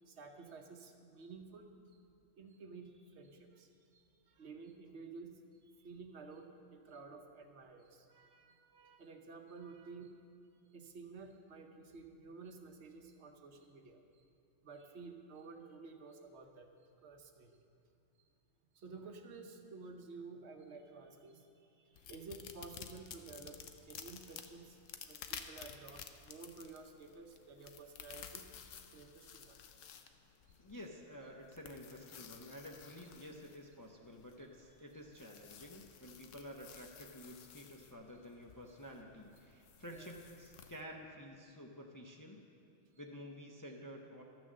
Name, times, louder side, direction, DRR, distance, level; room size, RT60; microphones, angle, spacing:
voice 1, 0.1-1.7 2.4-5.4 5.8-10.2 10.7-14.2 14.6-16.7 17.0-17.6 18.7-24.8 25.1-28.4 28.9-29.6 39.9-40.1 43.0-43.1, right 4 dB, 65° right, 5 dB, 1.0 m, -52 dB
sound 1, 21.9-40.8, left 8 dB, 90° left, 1.0 m, -54 dB
voice 2, 30.6-42.4 43.0-44.2, equal, 20° left, 0 dB, 0.5 m, -51 dB
12.5 x 6.1 x 7.3 m, 2.5 s
omnidirectional pair, 1.3 m